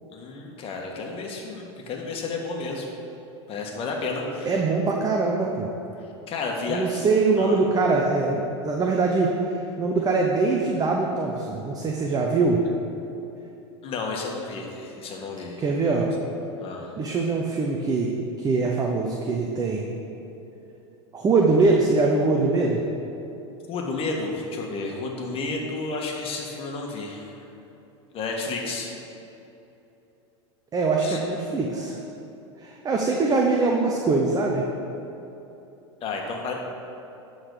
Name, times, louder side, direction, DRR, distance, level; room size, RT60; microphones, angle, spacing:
voice 1, 0.1-2.9 3.5-4.6 6.3-7.1 7.4-7.6 13.8-15.6 16.6-16.9 23.7-27.3 28.1-28.9 31.0-31.2 36.0-36.5, left 3 dB, 40° left, 0 dB, 1.6 m, -31 dB
voice 2, 4.5-5.7 6.7-9.3 9.8-12.6 15.6-16.1 17.0-18.1 18.4-19.9 21.1-22.8 30.7-32.0 32.6-34.6, right 3 dB, 25° right, 0 dB, 0.8 m, -23 dB
10.0 x 4.0 x 6.4 m, 2.9 s
hypercardioid pair, 105°, 15 cm